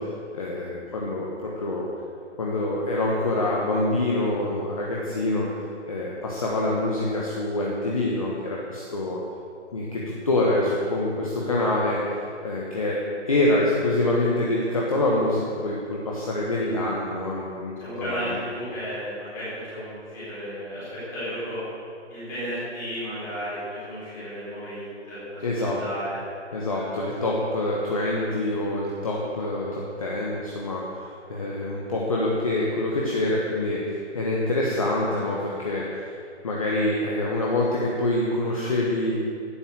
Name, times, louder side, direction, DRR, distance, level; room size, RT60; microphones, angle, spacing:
voice 1, 0.0-1.9 2.4-5.5 5.9-9.2 9.7-12.2 12.4-13.0 13.3-17.7 18.0-18.2 25.4-25.8 26.5-36.1 36.4-39.2, left 1 dB, 30° left, -4 dB, 1.3 m, -26 dB
voice 2, 17.8-21.6 22.1-26.2 26.7-26.9, equal, 5° left, -12 dB, 3.9 m, -34 dB
12.0 x 9.6 x 7.8 m, 2.4 s
hypercardioid pair, 175°, 36 cm